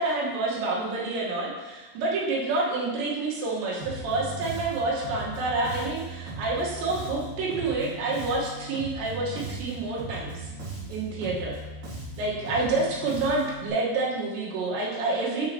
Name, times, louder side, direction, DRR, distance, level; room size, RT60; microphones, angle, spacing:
voice 1, 0.0-10.5 10.9-11.6 12.2-15.5, right 3 dB, 90° right, -4 dB, 3.7 m, -28 dB
Bass guitar, 3.8-13.7, right 2 dB, 65° right, 3.8 m, -38 dB
10.5 x 5.6 x 2.9 m, 1.2 s
omnidirectional pair, 5.0 m